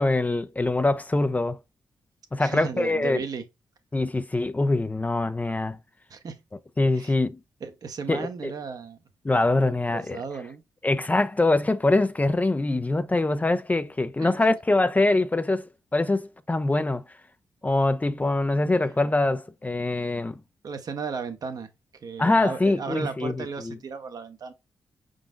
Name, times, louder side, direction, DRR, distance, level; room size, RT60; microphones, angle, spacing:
voice 1, 0.0-1.6 2.3-3.2 3.9-5.8 6.8-7.4 8.1-8.5 9.2-10.2 10.8-17.0 17.6-20.4 22.2-23.8, left 2 dB, 20° left, 0.4 m, -24 dB
voice 2, 2.4-3.4 6.1-6.4 6.9-7.1 7.6-9.0 9.7-10.6 14.2-14.3 20.6-21.7 22.0-24.5, right 5 dB, 55° right, 0.8 m, -35 dB
4.9 x 3.8 x 2.4 m
supercardioid pair, 50°, 8 cm